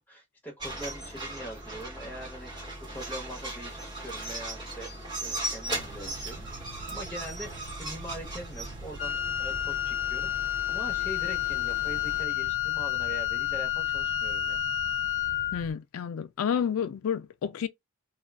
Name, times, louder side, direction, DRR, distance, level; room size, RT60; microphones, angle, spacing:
voice 1, 0.1-4.9 5.2-6.5 6.9-14.6, equal, 10° left, 0.9 m, -42 dB
sound 1, 0.6-12.2, right 1 dB, 20° right, 1.1 m, -38 dB
sound 2, 5.7-15.7, right 4 dB, 75° right, 0.4 m, -46 dB
Wind instrument woodwind instrument, 9.0-15.6, left 12 dB, 35° left, 0.7 m, -30 dB
voice 2, 15.5-17.7, left 7 dB, 85° left, 0.4 m, -30 dB
2.4 x 2.2 x 2.2 m
head